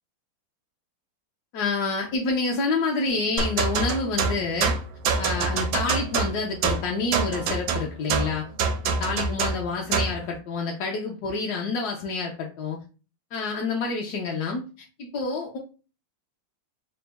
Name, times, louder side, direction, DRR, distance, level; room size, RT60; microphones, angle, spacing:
voice 1, 1.5-4.7 5.2-8.5 8.8-12.8 13.3-15.6, left 3 dB, 75° left, -1 dB, 0.9 m, -28 dB
sound 1, 3.4-10.2, right 5 dB, 75° right, 1.0 m, -26 dB
4.0 x 2.1 x 3.3 m, 0.34 s
omnidirectional pair, 2.4 m